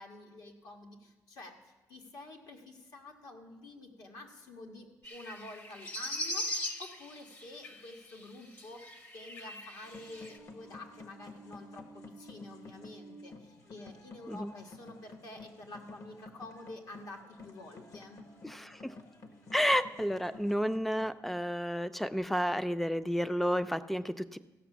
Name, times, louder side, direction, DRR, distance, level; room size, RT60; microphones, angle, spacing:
voice 1, 0.0-18.2, left 2 dB, 75° left, 2 dB, 1.6 m, -49 dB
sound 1, 5.0-8.3 8.6-10.4, left 1 dB, 35° left, 0.8 m, -40 dB
sound 2, 9.8-21.1, left 2 dB, 55° left, 1.2 m, -52 dB
voice 2, 18.4-18.9 19.5-24.4, equal, 5° left, 13 dB, 0.4 m, -31 dB
15.0 x 5.8 x 7.2 m, 1.2 s
cardioid pair, 130°, 6 cm